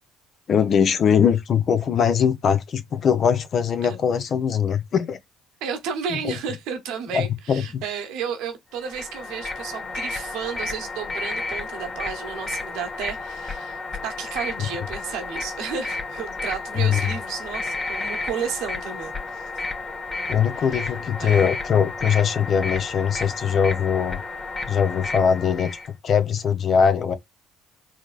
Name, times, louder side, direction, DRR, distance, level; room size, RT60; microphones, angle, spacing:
voice 1, 0.5-5.2 6.1-6.3 7.1-7.8 16.8-17.0 20.3-24.2 24.7-25.7 26.0-27.2, left 7 dB, 50° left, 0.7 m, -21 dB
voice 2, 5.6-19.4 20.5-20.9 21.2-21.5, right 7 dB, 65° right, 0.9 m, -32 dB
sound 1, 8.8-25.9, left 3 dB, 30° left, 1.4 m, -32 dB
4.5 x 2.9 x 2.4 m
hypercardioid pair, 55°, 0 cm